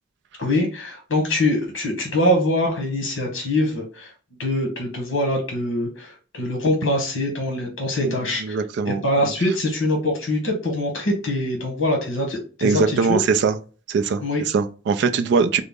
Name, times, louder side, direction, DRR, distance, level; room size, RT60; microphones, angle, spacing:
voice 1, 0.4-4.1 4.4-8.6 8.9-13.0 14.2-14.4, left 1 dB, 65° left, 1.1 m, -23 dB
voice 2, 8.4-9.3 12.6-13.5 13.9-15.6, right 5 dB, 60° right, 0.3 m, -21 dB
3.8 x 2.0 x 3.5 m
head